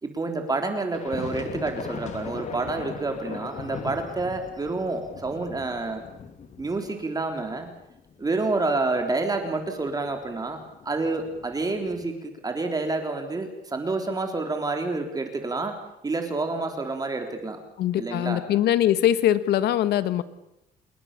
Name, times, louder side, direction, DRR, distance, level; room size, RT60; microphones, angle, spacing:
voice 1, 0.0-6.1 6.6-7.7 8.2-15.7 16.0-17.6 18.0-18.4, right 3 dB, 20° right, 5 dB, 3.8 m, -28 dB
sound 1, 0.9-12.1, left 6 dB, 45° left, 2.7 m, -40 dB
voice 2, 17.8-20.2, left 12 dB, 75° left, 14 dB, 1.6 m, -22 dB
28.0 x 21.0 x 6.9 m, 0.84 s
cardioid pair, 110°, 17 cm